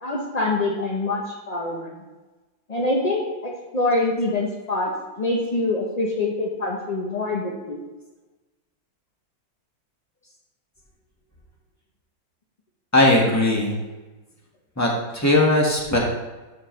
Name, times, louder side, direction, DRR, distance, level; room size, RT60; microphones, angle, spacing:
voice 1, 0.0-2.0 2.7-4.9 5.2-7.8, left 2 dB, 50° left, -2 dB, 0.4 m, -25 dB
voice 2, 12.9-13.8 14.8-16.0, left 1 dB, 10° left, -3 dB, 1.3 m, -19 dB
12.5 x 4.8 x 3.2 m, 1.2 s
omnidirectional pair, 2.1 m